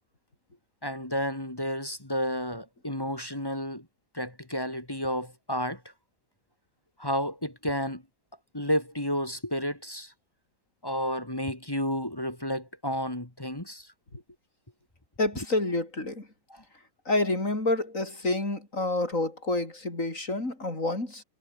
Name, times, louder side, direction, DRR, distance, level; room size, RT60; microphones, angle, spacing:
voice 1, 0.8-3.9 4.1-5.8 7.0-8.0 8.5-10.1 10.8-13.9 16.5-16.6, equal, 15° left, 2.0 m, -31 dB
voice 2, 15.2-16.3 17.1-21.2, left 2 dB, 45° left, 6.4 m, -28 dB
omnidirectional pair, 1.9 m